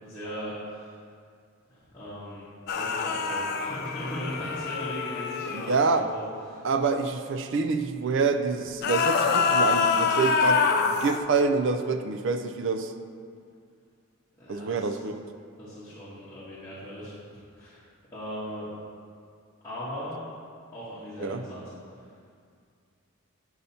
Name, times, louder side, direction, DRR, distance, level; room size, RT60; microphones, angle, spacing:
voice 1, 0.0-0.9 1.7-2.4 2.7-6.2 6.5-6.7 14.4-15.0 15.6-17.1 17.6-17.8 18.1-18.7 19.6-20.2 20.7-21.7, equal, 15° left, -13 dB, 1.2 m, -38 dB
sound 1, 2.7-5.8 8.7-11.2, left 5 dB, 45° left, 0.3 m, -25 dB
voice 2, 5.5-6.1 6.6-12.9 14.5-15.1 21.2-21.4, right 4 dB, 55° right, 7 dB, 0.4 m, -27 dB
8.9 x 5.5 x 2.8 m, 2.2 s
head